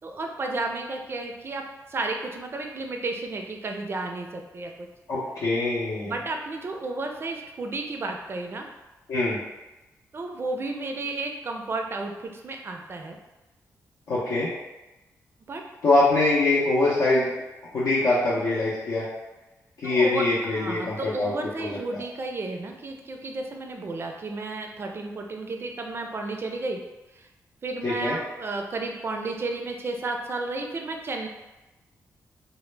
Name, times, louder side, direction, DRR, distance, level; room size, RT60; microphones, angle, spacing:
voice 1, 0.0-4.9 6.0-8.7 10.1-13.2 15.5-15.6 19.8-20.2 20.5-26.8 27.2-27.3 27.6-31.3, right 3 dB, 40° right, 3 dB, 0.4 m, -32 dB
voice 2, 5.1-6.1 9.1-9.4 14.1-14.5 15.8-17.3 17.6-19.1 19.8-21.3 21.6-22.0 27.8-28.2, left 2 dB, 75° left, -8 dB, 0.6 m, -23 dB
2.0 x 2.0 x 3.1 m, 1.1 s
cardioid pair, 90°, 6 cm